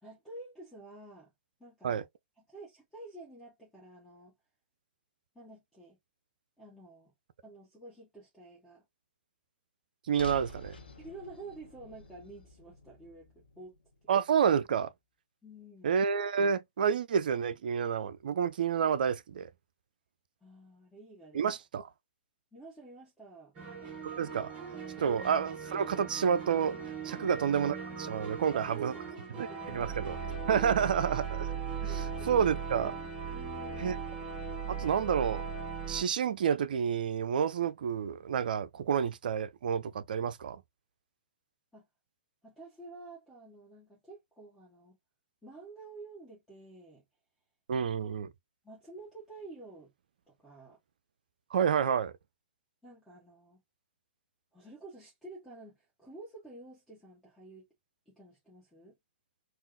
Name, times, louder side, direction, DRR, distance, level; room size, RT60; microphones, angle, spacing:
voice 1, 0.0-1.3 1.6-2.1 2.5-4.3 5.3-6.0 6.6-7.1 7.4-8.8 11.0-13.7 15.4-16.0 20.4-21.5 22.5-23.5 27.2-27.5 28.5-28.8 29.3-30.0 31.9-32.5 33.3-34.0 41.7-41.9 42.4-45.0 45.4-47.0 48.6-49.9 50.3-50.8 52.8-53.6 54.5-57.7 58.0-58.9, right 2 dB, 5° left, 1.5 m, -50 dB
sound 1, 10.1-14.4, equal, 85° left, 0.8 m, -48 dB
voice 2, 10.1-10.8 14.1-14.9 15.8-19.5 21.3-21.8 24.0-24.5 25.0-26.8 27.0-28.9 29.4-29.5 29.7-30.2 30.5-31.5 31.8-33.0 33.8-33.9 34.7-35.4 35.9-40.6 47.7-48.3 51.5-52.1, right 7 dB, 65° right, 0.4 m, -29 dB
sound 2, 23.6-36.0, right 6 dB, 25° right, 1.2 m, -38 dB
3.5 x 2.4 x 2.2 m
figure-of-eight pair, 115°, 5 cm